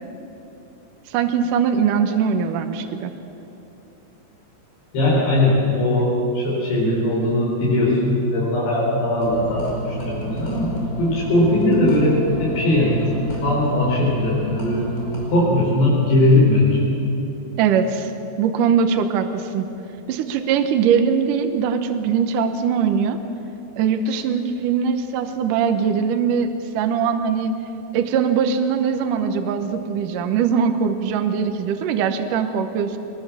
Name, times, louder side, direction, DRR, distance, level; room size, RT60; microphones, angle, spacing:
voice 1, 1.1-3.1 17.6-18.1 18.4-19.7 20.1-23.2 23.8-26.5 26.7-27.6 27.9-33.0, right 7 dB, 70° right, 7 dB, 2.1 m, -21 dB
voice 2, 4.9-10.7 11.0-14.8 15.3-16.9, left 1 dB, 85° left, -6 dB, 6.7 m, -19 dB
sound 1, 9.2-15.4, right 1 dB, 20° left, 5.3 m, -29 dB
22.5 x 20.5 x 7.4 m, 2.9 s
omnidirectional pair, 4.7 m